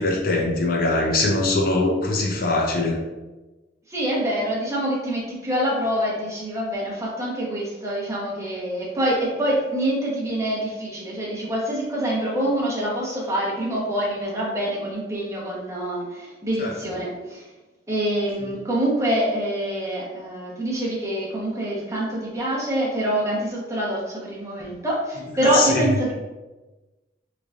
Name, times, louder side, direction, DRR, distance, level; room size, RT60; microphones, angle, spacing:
voice 1, 0.0-3.0 16.6-16.8 25.4-25.9, left 2 dB, 55° left, 0 dB, 0.5 m, -22 dB
voice 2, 3.9-17.5 17.9-26.1, right 1 dB, 15° right, -5 dB, 0.9 m, -25 dB
3.9 x 3.2 x 2.4 m, 1.1 s
head